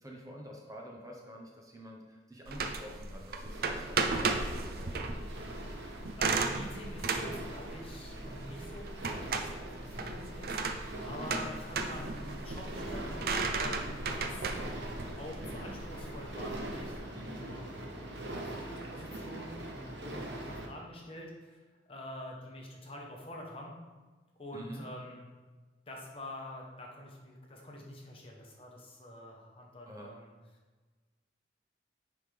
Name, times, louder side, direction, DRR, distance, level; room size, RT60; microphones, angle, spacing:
voice 1, 0.0-5.1 11.2-11.5 17.1-17.5 24.5-24.8 29.9-30.1, equal, 20° right, -1 dB, 0.8 m, -48 dB
sound 1, 2.5-17.0, right 4 dB, 55° right, 0.5 m, -35 dB
sound 2, 3.5-20.7, right 1 dB, 80° right, 1.0 m, -43 dB
voice 2, 6.1-14.5 15.2-23.8 24.4-25.3 25.9-30.3, left 1 dB, 30° left, -1 dB, 0.9 m, -46 dB
9.4 x 3.5 x 3.3 m, 1.3 s
head